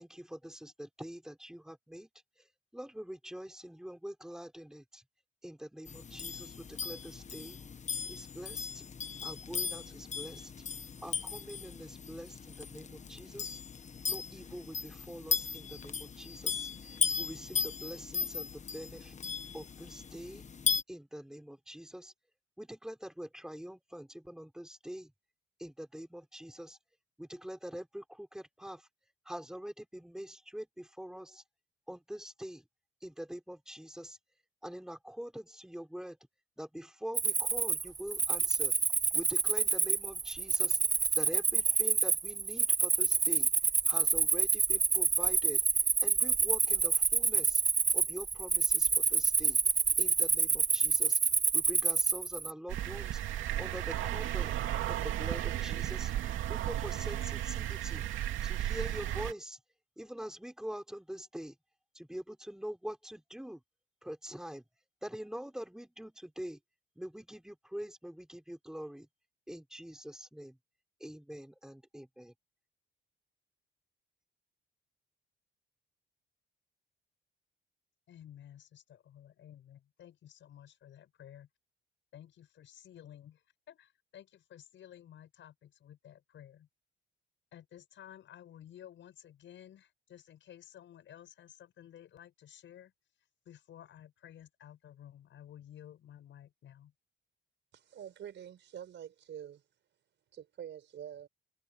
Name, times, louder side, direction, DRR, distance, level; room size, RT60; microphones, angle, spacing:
voice 1, 0.0-2.1 2.4-5.0 5.4-7.6 8.1-8.9 9.2-10.7 11.0-13.6 14.1-19.1 19.5-20.5 20.9-22.1 22.6-25.1 25.6-26.8 27.2-28.9 29.2-31.4 31.9-32.7 33.0-34.2 34.6-36.2 36.6-38.7 39.1-40.8 41.1-43.5 43.9-45.6 46.0-47.6 47.9-49.6 50.0-51.2 51.5-53.2 53.6-54.5 54.9-56.1 56.5-58.1 58.4-59.6 60.0-61.6 61.9-63.6 64.0-64.7 65.0-66.6 66.9-69.1 69.5-70.6 71.0-72.3, equal, 5° right, 4.8 m, -44 dB
sound 1, 5.9-20.8, left 6 dB, 35° left, 1.3 m, -37 dB
Cricket, 37.1-52.5, right 5 dB, 20° right, 0.4 m, -28 dB
sound 2, 52.7-59.3, right 12 dB, 80° right, 2.8 m, -34 dB
voice 2, 78.1-81.5 82.1-86.7 87.5-92.9 93.5-96.9, left 10 dB, 70° left, 7.4 m, -54 dB
voice 3, 97.7-99.6 100.3-101.3, right 9 dB, 65° right, 5.2 m, -46 dB
cardioid pair, 90°, 20 cm